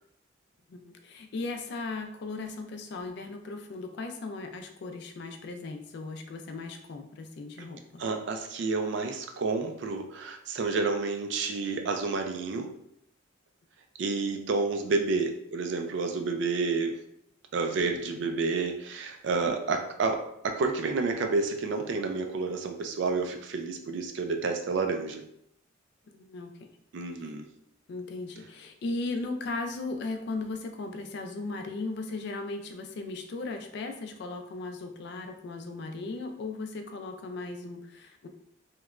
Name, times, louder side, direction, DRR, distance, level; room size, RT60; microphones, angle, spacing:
voice 1, 0.7-8.0 18.2-18.4 26.1-26.7 27.9-38.3, left 3 dB, 55° left, 5 dB, 0.3 m, -37 dB
voice 2, 8.0-12.7 14.0-17.0 17.5-25.2 26.9-27.5, right 4 dB, 60° right, 5 dB, 0.3 m, -30 dB
2.9 x 2.1 x 2.4 m, 0.75 s
head